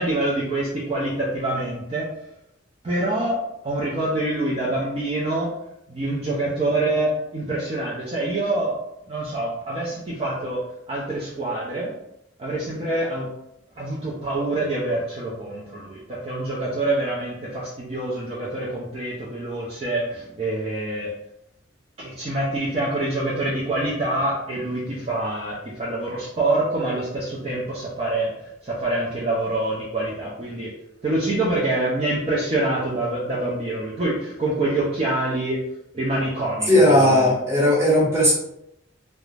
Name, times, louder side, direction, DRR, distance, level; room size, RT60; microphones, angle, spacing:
voice 1, 0.0-2.1 2.8-5.5 5.9-8.8 9.1-11.9 12.4-13.3 13.8-21.1 22.0-30.7 31.0-35.6 35.9-37.3, right 2 dB, 30° right, -6 dB, 0.5 m, -26 dB
voice 2, 36.7-38.3, left 1 dB, 15° right, -6 dB, 0.9 m, -17 dB
2.4 x 2.1 x 3.1 m, 0.81 s
head